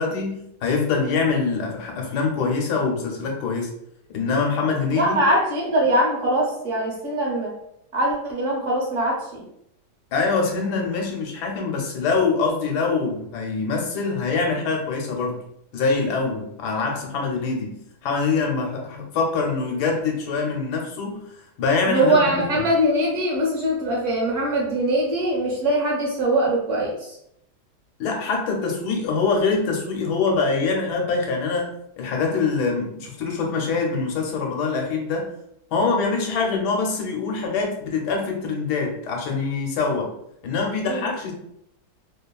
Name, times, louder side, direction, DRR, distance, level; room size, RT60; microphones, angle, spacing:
voice 1, 0.0-3.7 4.1-5.2 10.1-15.4 15.7-21.3 21.6-22.7 28.0-35.3 35.7-40.1 40.4-41.3, left 4 dB, 90° left, 1 dB, 1.2 m, -24 dB
voice 2, 4.9-7.5 7.9-9.5 21.9-27.2 40.9-41.1, right 1 dB, 60° right, -2 dB, 0.9 m, -22 dB
2.9 x 2.3 x 2.2 m, 0.76 s
omnidirectional pair, 1.7 m